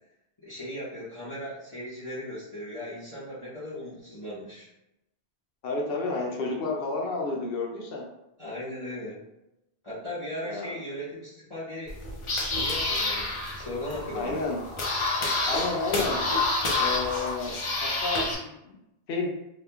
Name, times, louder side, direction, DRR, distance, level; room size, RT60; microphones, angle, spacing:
voice 1, 0.4-4.7 8.4-9.2 9.8-12.0 12.5-14.4, left 1 dB, 30° left, -11 dB, 0.8 m, -37 dB
voice 2, 5.6-8.1 10.4-10.7 14.1-14.6 15.5-16.2 16.8-18.8 19.1-19.3, left 3 dB, 65° left, 0 dB, 0.8 m, -31 dB
sound 1, 11.9-18.3, left 2 dB, 50° left, 0.4 m, -28 dB
2.8 x 2.3 x 2.3 m, 0.89 s
omnidirectional pair, 1.1 m